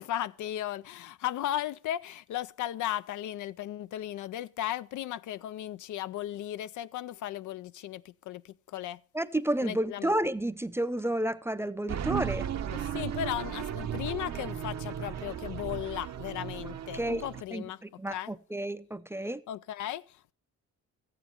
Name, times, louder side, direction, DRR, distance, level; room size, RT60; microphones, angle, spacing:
voice 1, 0.0-9.0 9.6-10.1 12.7-17.8 18.1-18.3 19.5-20.3, left 12 dB, 70° left, 0.5 m, -36 dB
voice 2, 9.1-12.5 16.9-17.2 17.5-19.4, right 1 dB, 10° right, 0.5 m, -31 dB
sound 1, 11.9-17.4, right 9 dB, 60° right, 0.8 m, -35 dB
14.0 x 9.2 x 2.9 m
cardioid pair, 85°, 31 cm